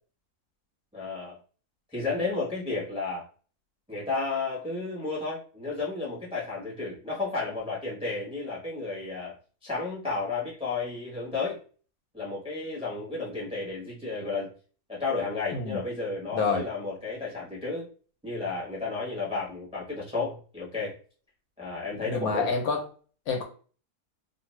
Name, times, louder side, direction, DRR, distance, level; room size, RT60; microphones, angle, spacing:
voice 1, 0.9-1.4 1.9-3.3 3.9-9.4 9.6-11.6 12.1-14.5 14.9-17.9 18.2-21.0 21.6-22.5, left 3 dB, 5° right, 0.7 m, -32 dB
voice 2, 16.3-16.6 22.0-22.8 23.3-23.4, left 4 dB, 70° left, 1.0 m, -27 dB
2.6 x 2.4 x 3.1 m
omnidirectional pair, 1.7 m